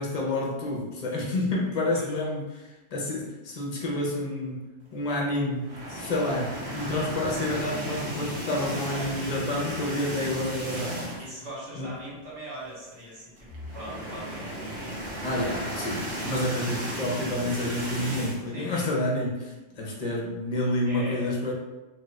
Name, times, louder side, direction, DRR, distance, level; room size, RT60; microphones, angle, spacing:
voice 1, 0.0-11.0 11.8-11.9 15.2-21.5, left 1 dB, 40° left, -3 dB, 0.7 m, -29 dB
sound 1, 5.6-11.4 11.8-11.9 12.2-12.3 13.4-18.4, right 1 dB, 65° right, 1.0 m, -35 dB
voice 2, 8.5-9.2 10.7-15.9 18.5-18.9 20.9-21.3, right 1 dB, 80° right, -7 dB, 1.5 m, -42 dB
2.8 x 2.4 x 3.1 m, 1.1 s
omnidirectional pair, 1.2 m